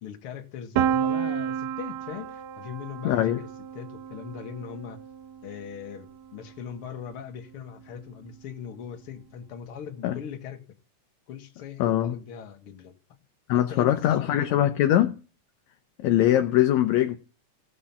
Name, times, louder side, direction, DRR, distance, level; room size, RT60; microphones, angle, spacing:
voice 1, 0.0-3.5 3.7-5.0 5.4-10.6 11.3-12.9 13.5-14.7, left 8 dB, 50° left, 2.2 m, -40 dB
Piano, 0.8-6.5, right 8 dB, 75° right, 1.9 m, -31 dB
voice 2, 3.1-3.4 10.0-10.2 11.8-12.2 13.5-15.2 16.0-17.2, left 12 dB, 75° left, 1.9 m, -22 dB
17.0 x 6.2 x 7.1 m
omnidirectional pair, 3.5 m